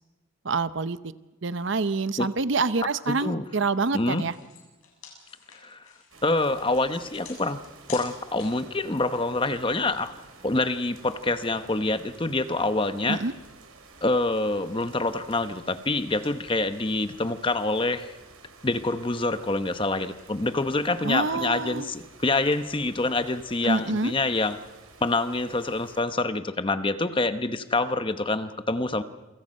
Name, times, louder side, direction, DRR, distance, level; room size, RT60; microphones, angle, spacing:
voice 1, 0.4-1.0 1.4-4.3 13.1-13.3 21.0-21.9 23.6-24.1, right 3 dB, 55° right, 14 dB, 0.7 m, -26 dB
voice 2, 3.1-3.5 3.9-4.2 5.6-5.8 6.2-7.6 7.9-10.1 10.4-13.2 14.0-18.1 18.6-24.6 25.0-29.0, left 2 dB, 25° left, 10 dB, 0.9 m, -26 dB
sound 1, 3.5-3.7 3.9-8.7, left 7 dB, 80° left, 7.9 m, -47 dB
sound 2, 6.1-26.0, right 3 dB, 80° right, 4.0 m, -51 dB
28.5 x 24.0 x 5.5 m, 1.2 s
head